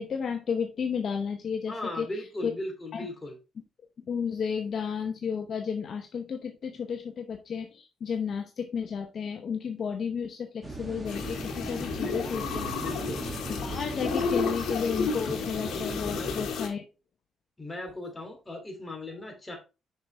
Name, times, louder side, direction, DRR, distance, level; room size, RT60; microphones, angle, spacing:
voice 1, 0.0-2.1 2.4-2.5 2.9-3.1 4.1-12.7 13.6-16.8, left 6 dB, 55° left, 5 dB, 0.9 m, -32 dB
voice 2, 1.7-3.4 11.9-12.4 12.7-13.2 16.0-16.4 17.6-19.6, left 1 dB, 20° left, 2 dB, 2.8 m, -38 dB
sound 1, 10.6-16.6, right 2 dB, 15° right, 1.9 m, -39 dB
sound 2, 11.0-16.7, left 5 dB, 80° left, 1.6 m, -32 dB
6.6 x 5.6 x 3.3 m, 0.29 s
cardioid pair, 90°, 0 cm